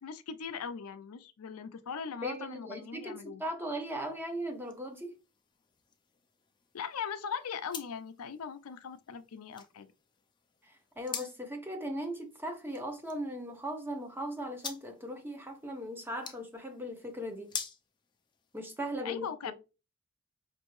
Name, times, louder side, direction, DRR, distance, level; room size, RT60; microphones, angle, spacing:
voice 1, 0.0-3.4 6.7-9.9 19.0-19.5, left 6 dB, 85° left, 0.5 m, -40 dB
voice 2, 2.2-3.1 3.4-5.1 10.6-17.5 18.5-19.5, equal, 10° right, 0.8 m, -38 dB
sound 1, 3.8-19.0, left 6 dB, 20° left, 0.4 m, -48 dB
5.2 x 2.6 x 3.1 m
head